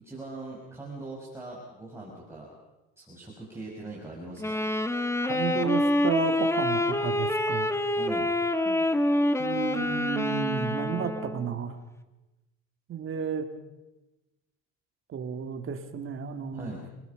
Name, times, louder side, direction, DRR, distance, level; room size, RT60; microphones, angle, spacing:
voice 1, 0.0-2.5 3.0-4.6 8.0-8.3 16.5-16.8, right 2 dB, 10° right, -5 dB, 6.3 m, -41 dB
Wind instrument woodwind instrument, 4.4-11.6, left 1 dB, 10° left, 1.5 m, -27 dB
voice 2, 5.2-7.7 8.6-8.8 9.4-11.8 12.9-13.5 15.1-16.7, right 7 dB, 45° right, 6 dB, 2.8 m, -32 dB
29.0 x 20.0 x 5.4 m, 1.1 s
cardioid pair, 110°, 30 cm